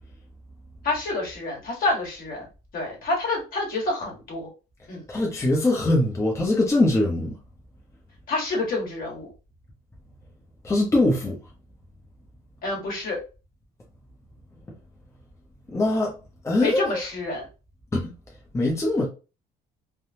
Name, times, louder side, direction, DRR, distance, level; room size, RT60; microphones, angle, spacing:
voice 1, 0.8-2.5 2.7-4.5 4.9-5.0 8.3-9.3 12.6-13.2 16.6-17.5, left 2 dB, 60° left, 1.7 m, -28 dB
voice 2, 5.1-7.3 10.6-11.3 15.7-16.1 16.4-17.0 17.9-18.1 18.5-19.0, left 2 dB, 15° left, 0.8 m, -22 dB
3.4 x 2.2 x 2.7 m
cardioid pair, 110°, 17 cm